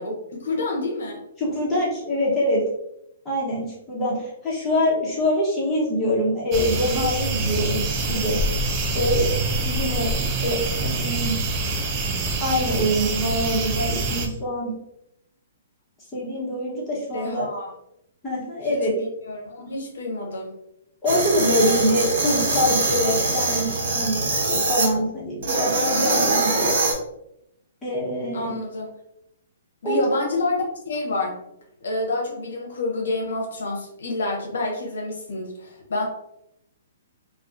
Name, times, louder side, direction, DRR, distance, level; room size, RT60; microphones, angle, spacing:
voice 1, 0.0-1.2 17.1-17.7 18.7-20.5 28.3-28.9 29.8-31.4 31.8-36.1, left 2 dB, 75° left, 0 dB, 0.7 m, -28 dB
voice 2, 1.4-2.6 3.2-8.4 8.9-11.3 12.4-14.7 16.1-17.5 18.2-18.9 21.0-23.7 23.9-26.8 27.8-28.5 29.8-30.0, equal, 15° left, -7 dB, 1.0 m, -24 dB
sound 1, 6.5-14.3, right 2 dB, 30° right, 0.4 m, -25 dB
sound 2, 21.1-24.9 25.4-26.9, right 2 dB, 60° right, 1.1 m, -23 dB
2.3 x 2.2 x 2.5 m, 0.80 s
hypercardioid pair, 140°, 0 cm